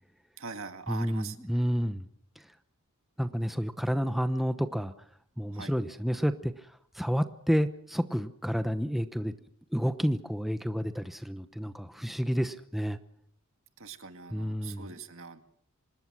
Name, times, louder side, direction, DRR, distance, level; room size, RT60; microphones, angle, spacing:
voice 1, 0.4-1.4 5.5-5.7 13.8-15.4, right 4 dB, 65° right, 7 dB, 2.0 m, -42 dB
voice 2, 0.9-2.1 2.4-2.5 3.2-4.9 5.4-9.3 9.7-13.0 14.3-14.9, equal, ahead, 9 dB, 0.9 m, -30 dB
25.5 x 20.5 x 6.2 m, 0.64 s
head